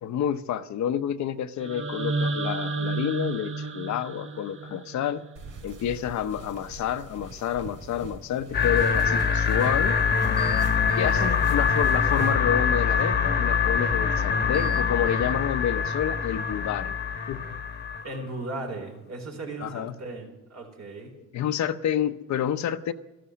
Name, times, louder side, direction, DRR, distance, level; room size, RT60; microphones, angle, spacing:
voice 1, 0.0-5.2 5.6-10.0 10.9-17.0 17.3-17.6 19.6-20.0 21.1-22.9, left 9 dB, 70° left, 11 dB, 0.8 m, -29 dB
sound 1, 1.6-5.6, right 3 dB, 45° right, 1.2 m, -31 dB
sound 2, 5.4-12.3, right 3 dB, 85° right, 2.7 m, -43 dB
sound 3, 8.5-18.0, left 6 dB, 35° left, 1.1 m, -24 dB
voice 2, 11.0-11.5 18.0-21.2, right 2 dB, 60° right, 2 dB, 4.2 m, -37 dB
13.5 x 13.0 x 6.4 m, 1.0 s
cardioid pair, 90°, 30 cm